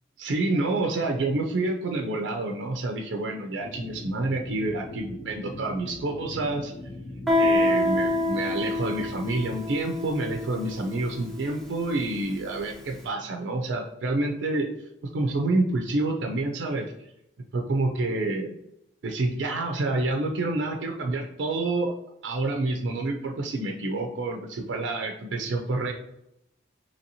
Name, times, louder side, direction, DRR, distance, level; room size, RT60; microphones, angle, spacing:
voice 1, 0.2-6.7 7.4-14.7 15.0-16.9 17.5-18.5 19.0-21.9 22.2-25.9, right 2 dB, 75° right, 2 dB, 0.4 m, -28 dB
sound 1, 3.6-9.6, left 2 dB, 55° left, 0.4 m, -41 dB
Guitar, 7.3-12.7, left 2 dB, ahead, 0.6 m, -27 dB
2.8 x 2.8 x 2.6 m, 0.82 s
head